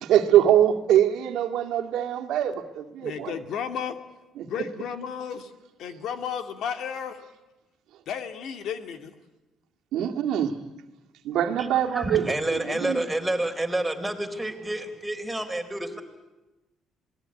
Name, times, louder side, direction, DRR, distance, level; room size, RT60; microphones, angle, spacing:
voice 1, 0.0-3.3 4.4-4.5 9.9-10.5 11.2-13.1, right 11 dB, 85° right, 2.0 m, -23 dB
voice 2, 3.0-4.0 4.4-5.5 5.8-7.2 8.1-9.1, left 7 dB, 75° left, 2.1 m, -33 dB
voice 3, 11.9-16.0, right 1 dB, 5° right, 4.0 m, -29 dB
27.0 x 19.5 x 9.9 m
cardioid pair, 100°, 0 cm